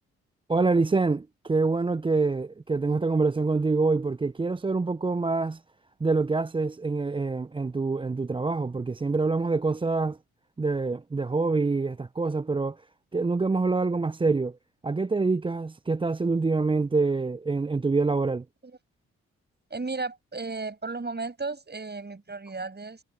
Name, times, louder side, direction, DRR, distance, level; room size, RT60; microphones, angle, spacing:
voice 1, 0.5-5.6 6.0-10.2 10.6-12.8 13.1-14.6 14.8-18.4, right 3 dB, 15° right, 0.5 m, -26 dB
voice 2, 19.7-23.0, right 3 dB, 35° right, 6.9 m, -34 dB
supercardioid pair, 45°, 31 cm